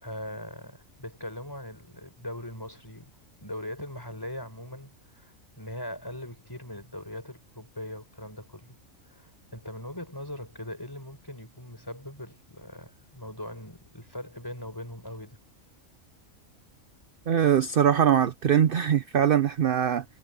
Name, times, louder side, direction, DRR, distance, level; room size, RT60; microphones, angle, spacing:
voice 1, 0.0-3.1 3.4-8.8 9.1-15.4, left 1 dB, 15° left, 5.5 m, -40 dB
voice 2, 17.3-20.0, right 9 dB, 50° right, 0.8 m, -22 dB
omnidirectional pair, 1.4 m